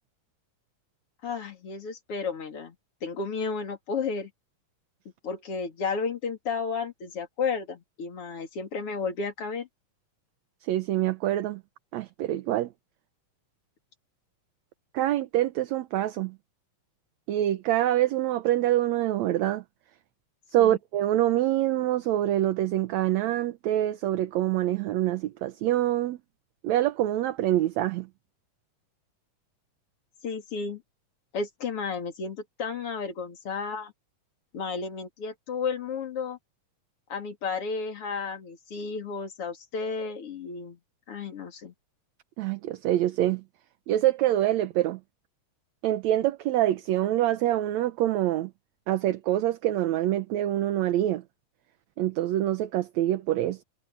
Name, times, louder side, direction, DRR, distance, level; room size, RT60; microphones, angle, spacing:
voice 1, 1.2-2.7 3.0-4.3 5.2-9.7 20.6-20.8 30.2-30.8 31.3-33.9 34.5-36.4 37.1-40.8 41.1-41.7, left 5 dB, 45° left, 3.4 m, -32 dB
voice 2, 10.6-11.6 11.9-12.7 14.9-16.4 17.3-19.6 20.5-26.2 26.6-28.1 42.4-43.4 43.9-45.0 45.8-48.5 48.9-51.2 52.0-53.6, right 13 dB, 70° right, 1.9 m, -25 dB
omnidirectional pair, 3.8 m